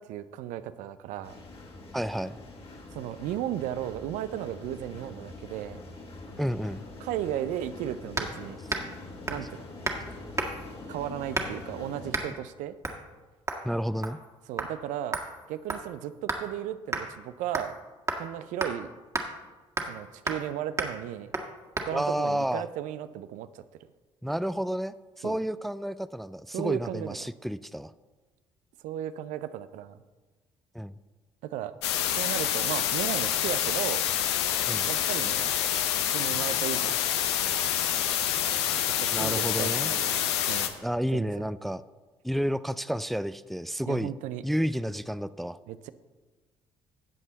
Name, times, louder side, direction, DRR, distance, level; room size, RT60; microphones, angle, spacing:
voice 1, 0.0-1.4 2.9-5.8 7.0-8.6 9.3-9.7 10.9-12.8 14.5-15.2 15.5-17.8 18.2-18.9 19.8-21.3 21.8-23.6 25.2-25.4 26.5-27.2 28.8-30.0 31.4-31.8 32.1-34.1 34.9-35.5 36.1-37.0 39.0-40.7 41.1-41.3 43.9-44.4 45.7-45.9, right 11 dB, 65° right, 13 dB, 0.5 m, -35 dB
sound 1, 1.2-12.1, left 2 dB, 45° left, 2.3 m, -44 dB
voice 2, 1.9-2.4 6.4-6.8 13.6-14.2 21.9-22.6 24.2-27.9 30.7-30.9 34.7-34.9 39.1-39.9 40.8-41.8 42.2-44.1 44.4-45.6, equal, ahead, 15 dB, 0.4 m, -30 dB
sound 2, 8.2-8.4 8.7-8.9 9.3-9.5 9.8-10.0 10.4-10.7 11.3-11.7 12.1-12.3 12.8-13.0 13.5-13.7 14.0-14.3 14.6-14.7 15.1-16.5 16.9-17.0 17.5-17.8 18.1-18.2 18.6-18.7 19.1-19.3 19.8-20.0 20.3-20.5 20.8-20.9 21.3-21.5 21.8-21.9, right 2 dB, 20° right, 1.8 m, -32 dB
sound 3, 31.8-40.7, left 10 dB, 85° left, 0.7 m, -27 dB
14.0 x 7.4 x 4.0 m, 1.3 s
hypercardioid pair, 50°, 14 cm